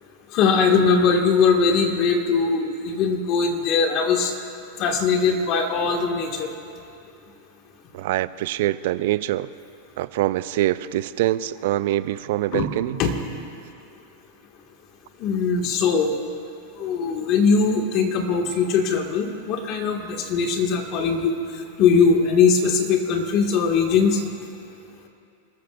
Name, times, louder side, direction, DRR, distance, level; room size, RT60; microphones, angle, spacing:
voice 1, 0.3-4.3 4.8-6.5 12.5-12.6 13.0-13.1 15.2-16.2 16.8-21.3 21.8-24.2, left 5 dB, 45° left, 3 dB, 2.0 m, -20 dB
voice 2, 7.9-9.5 10.0-13.0, right 14 dB, 65° right, 15 dB, 0.4 m, -24 dB
27.0 x 14.0 x 2.6 m, 2.6 s
hypercardioid pair, 120°, 0 cm